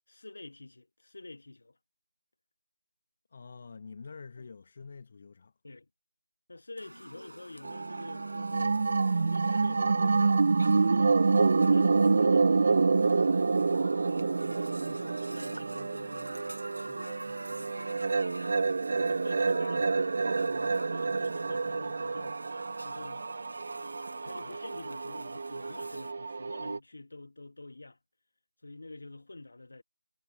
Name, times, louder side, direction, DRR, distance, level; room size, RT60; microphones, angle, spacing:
voice 1, 0.1-1.8 4.4-4.5 5.6-5.9 6.5-8.8 9.0-10.4 10.8-13.2 13.8-18.6 19.0-19.9 20.4-22.4 22.8-23.3 24.2-28.0 28.6-29.8, left 2 dB, 45° left, 2.6 m, -48 dB
voice 2, 3.3-5.5, left 5 dB, 25° left, 1.9 m, -47 dB
sound 1, 6.8-26.1, right 1 dB, 70° right, 6.7 m, -47 dB
sound 2, 7.6-26.8, right 4 dB, 30° right, 0.8 m, -28 dB
figure-of-eight pair, 165°, 0 cm